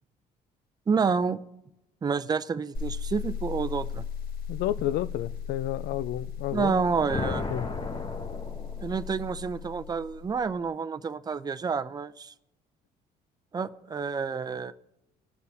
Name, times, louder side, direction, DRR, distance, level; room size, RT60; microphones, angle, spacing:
voice 1, 0.9-1.4 2.0-4.0 6.5-7.5 8.8-12.3 13.5-14.7, right 5 dB, 25° right, 0.6 m, -29 dB
sound 1, 2.7-10.6, left 7 dB, 60° left, 1.9 m, -37 dB
voice 2, 4.5-6.8 7.3-7.7, left 12 dB, 75° left, 0.5 m, -31 dB
sound 2, 6.7-9.2, left 3 dB, 30° left, 1.2 m, -35 dB
20.0 x 6.7 x 3.5 m
cardioid pair, 110°, 17 cm